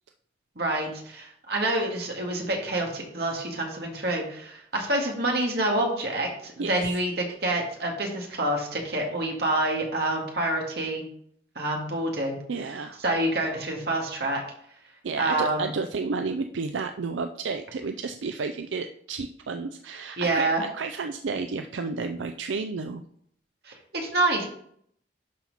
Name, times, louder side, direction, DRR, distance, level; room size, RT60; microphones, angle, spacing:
voice 1, 0.6-11.0 11.6-12.4 13.0-14.4 15.2-15.7 20.2-20.6 23.7-24.5, right 1 dB, 55° right, 0 dB, 1.9 m, -27 dB
voice 2, 6.6-6.9 12.5-13.0 15.0-23.0, right 4 dB, 85° right, 8 dB, 0.5 m, -32 dB
11.5 x 4.4 x 4.1 m, 0.66 s
head